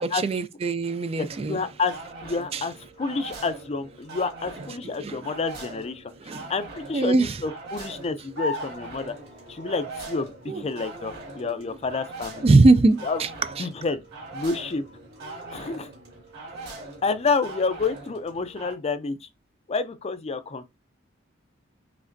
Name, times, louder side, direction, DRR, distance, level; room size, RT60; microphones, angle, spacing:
voice 1, 0.2-1.6 2.5-2.6 4.8-5.2 6.3-6.5 6.9-7.4 10.5-10.6 12.4-13.3 13.6-13.7, right 3 dB, 30° right, 0.3 m, -21 dB
voice 2, 1.2-1.9 2.2-9.1 9.5-12.5 13.0-13.2 13.6-14.0 14.3-14.8 15.5-15.9 17.0-19.3 19.7-20.7, left 4 dB, 30° left, 0.4 m, -29 dB
sound 1, 1.3-18.7, right 2 dB, 55° right, 2.2 m, -42 dB
sound 2, 8.3-16.3, left 1 dB, 85° right, 2.1 m, -41 dB
5.0 x 3.3 x 2.6 m
head